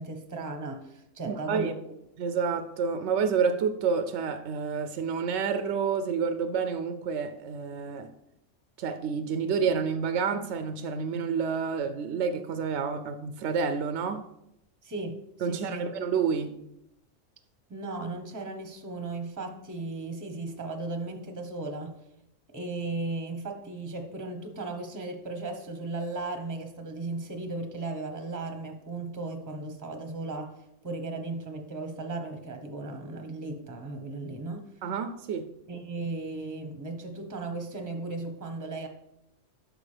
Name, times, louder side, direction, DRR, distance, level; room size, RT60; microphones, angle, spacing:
voice 1, 0.0-1.9 14.8-15.9 17.7-22.0 22.5-30.5 30.8-34.7 35.7-38.9, right 3 dB, 15° right, 4 dB, 0.9 m, -36 dB
voice 2, 1.3-1.7 2.2-8.1 8.8-14.2 15.4-16.6 34.8-35.5, right 6 dB, 70° right, 9 dB, 0.8 m, -29 dB
10.0 x 6.4 x 3.3 m, 0.82 s
omnidirectional pair, 1.3 m